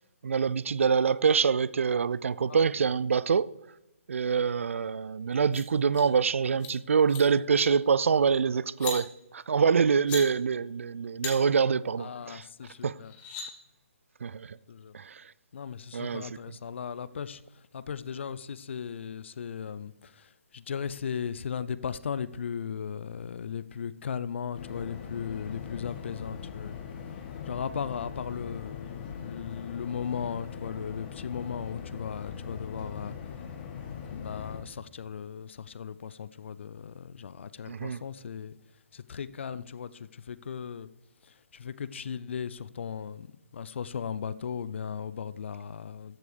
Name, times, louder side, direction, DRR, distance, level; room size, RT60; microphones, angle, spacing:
voice 1, 0.2-3.5 4.1-9.1 9.3-12.4 12.8-12.9 14.2-14.6 14.9-15.2 15.9-16.3 37.7-38.0, right 6 dB, 65° right, 0.3 m, -25 dB
sound 1, 5.3-5.6 5.9-6.1 6.5-6.7 7.0-7.2 7.6-7.8 8.7-9.0 9.9-10.2 11.2-11.3 12.7-12.8 13.0-13.5, left 6 dB, 20° left, 1.9 m, -37 dB
voice 2, 12.0-13.1 14.7-14.9 15.5-26.8 27.4-33.4 34.1-38.6 38.9-40.9 41.2-43.3 43.5-46.2, left 7 dB, 55° left, 0.5 m, -37 dB
sound 2, 24.5-34.6, left 7 dB, 40° left, 1.9 m, -41 dB
14.0 x 7.7 x 3.3 m
figure-of-eight pair, 135°, 8 cm